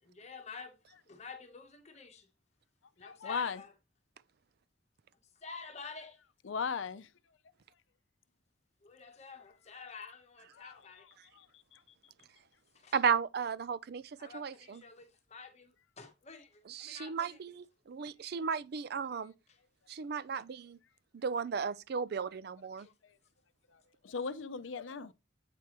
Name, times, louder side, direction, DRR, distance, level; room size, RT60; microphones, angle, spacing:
voice 1, 0.0-0.8 1.1-2.3 3.0-3.7 5.4-6.2 8.8-11.1 12.7-13.0 14.2-17.4 18.3-18.5 19.5-19.6 22.8-22.9, left 5 dB, 35° left, 0.9 m, -49 dB
voice 2, 3.0-3.6 6.5-7.1 10.6-10.7 11.4-11.5 11.7-11.8 24.0-25.1, left 5 dB, 90° left, 0.6 m, -37 dB
voice 3, 12.9-14.8 16.7-19.3 19.9-20.8 21.1-22.9, right 6 dB, 55° right, 0.4 m, -35 dB
8.5 x 4.7 x 3.0 m
head